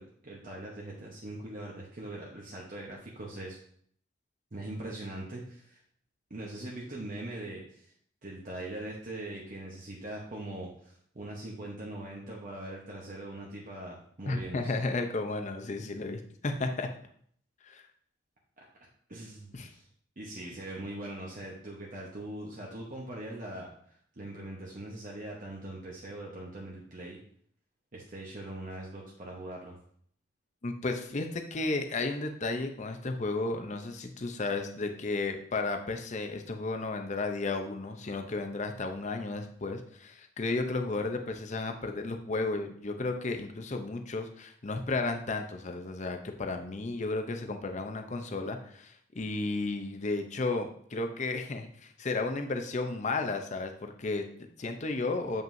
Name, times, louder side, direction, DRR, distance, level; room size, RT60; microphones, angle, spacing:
voice 1, 0.0-3.6 4.5-5.8 6.3-7.9 8.2-14.7 18.6-18.7 19.1-19.9 20.2-27.2 27.9-29.8, right 1 dB, 45° right, -3 dB, 1.0 m, -41 dB
voice 2, 14.3-16.9 17.6-17.8 19.5-19.7 30.6-55.4, left 3 dB, 40° left, 5 dB, 0.6 m, -33 dB
7.4 x 5.3 x 2.7 m, 0.62 s
head